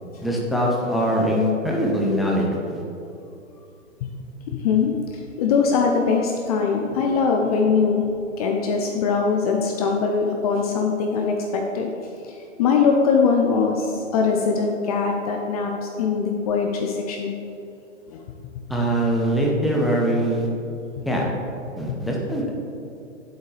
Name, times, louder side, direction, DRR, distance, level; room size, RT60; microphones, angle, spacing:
voice 1, 0.2-2.8 18.7-20.5 21.1-21.3 21.8-22.5, equal, ahead, -3 dB, 0.8 m, -22 dB
voice 2, 4.5-8.1 8.4-11.9 12.2-17.3 18.1-18.2, left 5 dB, 30° left, 2 dB, 0.6 m, -22 dB
8.8 x 7.8 x 3.4 m, 2.7 s
hypercardioid pair, 125°, 39 cm